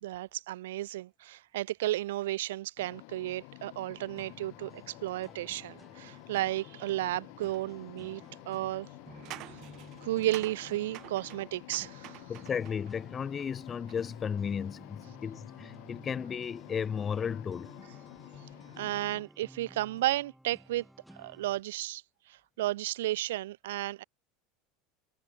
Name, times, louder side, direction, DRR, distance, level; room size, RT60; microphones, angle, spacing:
voice 1, 0.0-8.9 10.0-12.2 18.8-20.8 21.1-22.0 22.3-24.0, right 15 dB, 85° right, 0.6 m, -33 dB
sound 1, 2.8-19.2, left 34 dB, 70° left, 1.4 m, -51 dB
sound 2, 4.2-21.6, right 1 dB, 5° right, 4.6 m, -55 dB
sound 3, 7.5-7.6 9.0-12.9 13.4-14.2, right 18 dB, 55° right, 1.3 m, -49 dB
voice 2, 12.3-17.7, left 7 dB, 25° left, 0.6 m, -34 dB
supercardioid pair, 115°, 0 cm